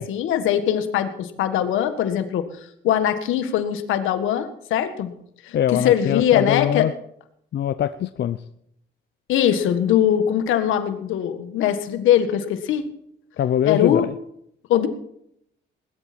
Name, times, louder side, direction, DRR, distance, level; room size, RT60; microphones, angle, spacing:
voice 1, 0.0-2.4 2.8-5.1 5.4-6.9 9.3-12.8 13.6-14.0 14.7-14.9, left 10 dB, 85° left, 10 dB, 1.6 m, -21 dB
voice 2, 5.5-6.9 7.5-8.4 13.4-14.1, left 10 dB, 60° left, 13 dB, 0.6 m, -22 dB
19.5 x 13.0 x 4.4 m, 0.72 s
cardioid pair, 90°, 20 cm